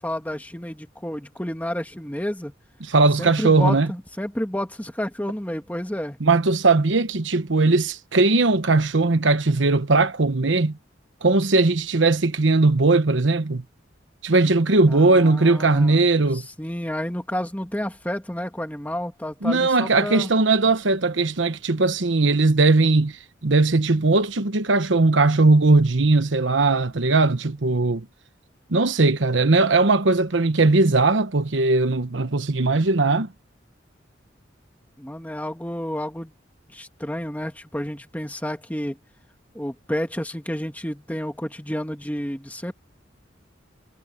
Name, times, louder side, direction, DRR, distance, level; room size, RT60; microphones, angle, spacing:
voice 1, 0.0-2.5 3.2-6.2 14.9-16.0 16.3-20.3 35.0-36.3 36.7-39.0 39.5-42.7, equal, 10° left, 2.0 m, -30 dB
voice 2, 2.8-3.9 6.2-10.8 11.2-13.6 14.2-16.4 19.4-23.2 23.4-28.0 28.7-33.3, right 3 dB, 75° right, 1.1 m, -19 dB
head